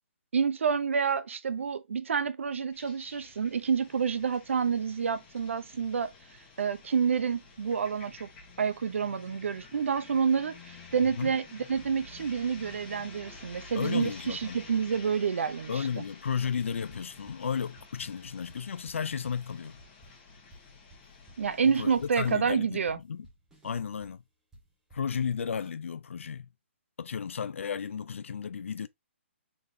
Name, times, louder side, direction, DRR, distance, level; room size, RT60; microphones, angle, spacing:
voice 1, 0.3-6.1 6.6-8.3 8.6-16.0 21.4-23.0, right 6 dB, 80° right, 0.6 m, -28 dB
sound 1, 2.7-22.3, left 4 dB, 20° left, 1.1 m, -51 dB
voice 2, 11.0-11.3 13.7-14.6 15.7-19.8 21.6-23.3 23.6-24.2 24.9-26.5 27.0-28.9, left 6 dB, 80° left, 0.5 m, -33 dB
sound 2, 16.5-25.7, right 1 dB, 5° right, 0.9 m, -57 dB
3.9 x 3.3 x 2.7 m
hypercardioid pair, 160°, 7 cm